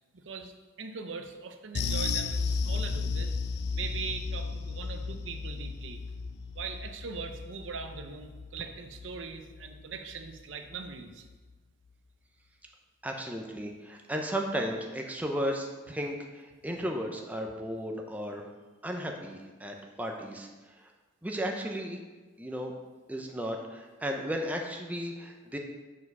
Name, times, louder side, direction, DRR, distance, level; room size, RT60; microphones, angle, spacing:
voice 1, 0.1-3.4 3.7-6.0 6.5-11.3, right 5 dB, 70° right, 6 dB, 0.6 m, -41 dB
sound 1, 1.7-10.4 10.7-10.9 11.3-11.4, left 4 dB, 55° left, 0.4 m, -34 dB
voice 2, 13.0-18.4 18.8-20.5 21.2-22.0 22.4-22.7 23.1-25.6, equal, 10° right, 2 dB, 0.6 m, -34 dB
6.3 x 4.8 x 5.4 m, 1.3 s
head